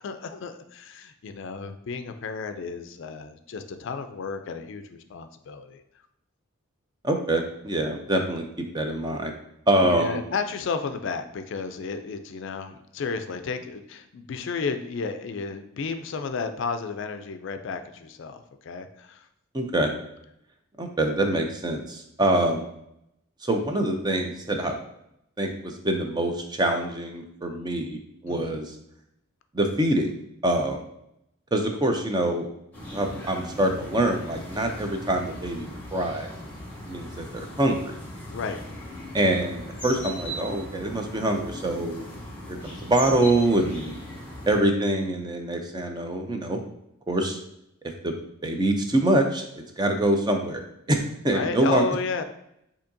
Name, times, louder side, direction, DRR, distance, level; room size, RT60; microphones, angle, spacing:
voice 1, 0.0-5.8 9.8-19.3 28.3-28.6 38.3-38.6 51.3-52.2, left 4 dB, 60° left, 8 dB, 0.4 m, -32 dB
voice 2, 7.0-9.3 9.7-10.2 19.5-19.9 20.8-22.7 23.4-24.8 25.4-28.7 29.5-30.1 30.4-30.8 31.5-32.5 32.9-36.3 36.9-38.0 39.1-42.1 42.5-44.0 44.5-46.6 47.1-47.4 48.0-48.1 48.4-51.8, right 1 dB, 20° right, 4 dB, 0.5 m, -25 dB
sound 1, 32.7-44.6, equal, 10° left, 1.2 m, -39 dB
6.9 x 2.8 x 2.6 m, 0.79 s
head